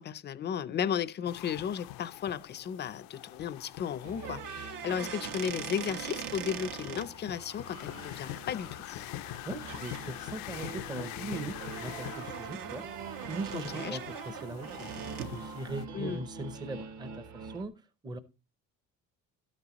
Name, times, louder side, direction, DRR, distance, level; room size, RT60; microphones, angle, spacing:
voice 1, 0.0-9.1 13.5-14.0 15.9-16.2, left 8 dB, 30° left, 0.5 m, -35 dB
sound 1, 1.3-15.9, left 16 dB, 85° left, 0.5 m, -44 dB
sound 2, 4.0-17.6, right 5 dB, 50° right, 1.2 m, -46 dB
sound 3, 4.2-7.1 9.2-9.4 9.7-10.0 10.5-15.4, right 9 dB, 75° right, 1.2 m, -42 dB
voice 2, 9.5-12.8 13.3-14.9 15.3-17.7 18.0-18.2, right 2 dB, 10° right, 0.6 m, -40 dB
12.5 x 9.5 x 2.9 m
cardioid pair, 165°, 34 cm